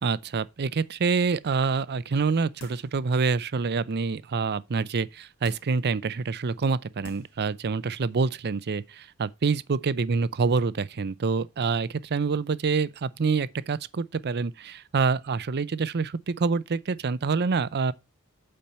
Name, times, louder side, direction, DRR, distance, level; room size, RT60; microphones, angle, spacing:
voice 1, 0.0-17.9, right 4 dB, 50° right, 0.5 m, -26 dB
sound 1, 2.6-3.0 3.5-3.6 5.4-5.9 6.6-6.7 7.0-7.4 7.8-7.9, left 2 dB, 85° left, 2.4 m, -48 dB
8.6 x 4.4 x 5.6 m
head